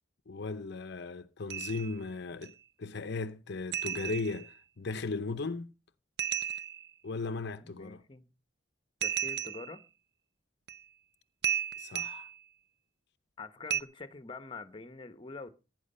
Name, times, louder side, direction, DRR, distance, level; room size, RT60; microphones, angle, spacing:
voice 1, 0.3-2.5 2.8-5.7 7.0-8.0 11.8-12.3, left 3 dB, 60° left, 0.7 m, -37 dB
sound 1, 1.5-2.0 2.4-2.5 3.7-4.5 6.2-6.9 9.0-9.8 10.7-10.8 11.4-12.4 13.7-13.8, right 10 dB, 60° right, 0.6 m, -34 dB
voice 2, 7.6-8.3 9.0-9.8 13.4-15.5, left 3 dB, 25° left, 1.0 m, -45 dB
16.5 x 9.5 x 5.5 m
head